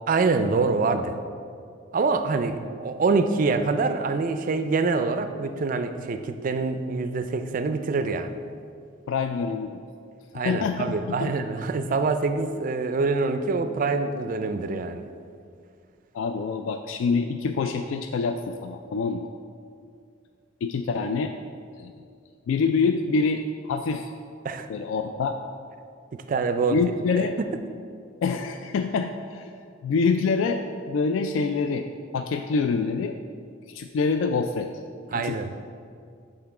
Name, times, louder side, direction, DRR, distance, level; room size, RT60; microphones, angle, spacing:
voice 1, 0.1-1.2 1.9-8.4 10.3-15.0 24.4-24.7 26.3-26.8 27.4-27.5 35.1-35.5, right 4 dB, 45° right, 9 dB, 0.4 m, -25 dB
voice 2, 9.1-9.8 10.3-10.9 11.2-11.3 16.1-19.3 20.6-21.3 21.8-21.9 22.5-24.1 24.7-25.4 26.7-27.4 28.2-29.5 29.8-30.6 30.9-31.9 32.1-33.2 33.7-34.7 35.1-35.4, left 4 dB, 75° left, 6 dB, 0.3 m, -26 dB
8.0 x 3.8 x 4.8 m, 2.3 s
head